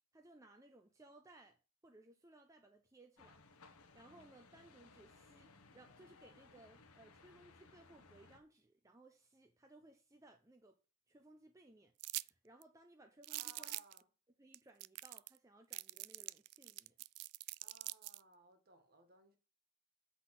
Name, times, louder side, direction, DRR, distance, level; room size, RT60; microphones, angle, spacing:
voice 1, 0.1-1.6 1.8-3.4 3.9-10.7 11.1-13.8 14.4-17.0, right 2 dB, 15° right, 0.7 m, -62 dB
sound 1, 3.2-8.4, left 3 dB, 80° left, 1.2 m, -63 dB
sound 2, 12.0-12.3 12.6-12.7 13.2-14.0 14.5-14.6 14.8-15.4 15.7-18.2, right 20 dB, 85° right, 0.3 m, -44 dB
voice 2, 13.3-14.1 17.6-19.4, right 2 dB, 45° right, 1.7 m, -62 dB
8.0 x 4.1 x 5.9 m
head